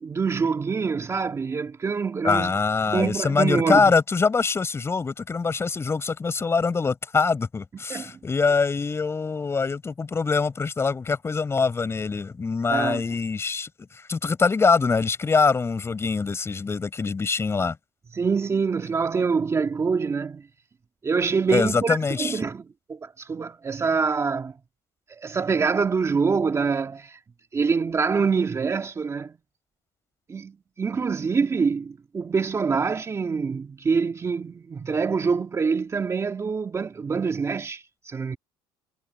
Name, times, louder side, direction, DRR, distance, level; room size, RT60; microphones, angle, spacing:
voice 1, 0.0-2.5 2.9-3.9 7.9-8.2 12.7-13.0 18.1-20.5 21.0-24.6 25.1-27.2 27.5-29.4 30.3-38.4, right 5 dB, 25° right, 2.2 m, -25 dB
voice 2, 2.2-17.8 21.5-22.3, left 4 dB, 20° left, 5.3 m, -24 dB
cardioid pair, 115°, 12 cm